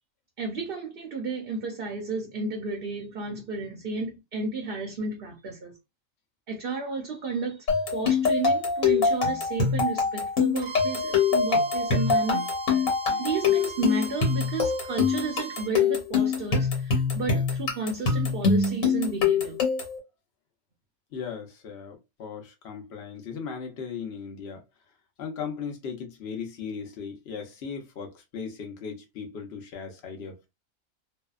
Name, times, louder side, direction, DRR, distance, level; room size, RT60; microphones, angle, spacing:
voice 1, 0.4-5.8 6.5-12.5 13.2-19.6, right 4 dB, 55° right, 0.7 m, -32 dB
sound 1, 7.7-20.0, left 5 dB, 85° left, 1.4 m, -24 dB
Bowed string instrument, 10.6-15.7, right 5 dB, 90° right, 1.0 m, -39 dB
voice 2, 21.1-24.6 25.2-30.5, left 6 dB, 60° left, 1.0 m, -37 dB
2.6 x 2.2 x 2.3 m
omnidirectional pair, 1.4 m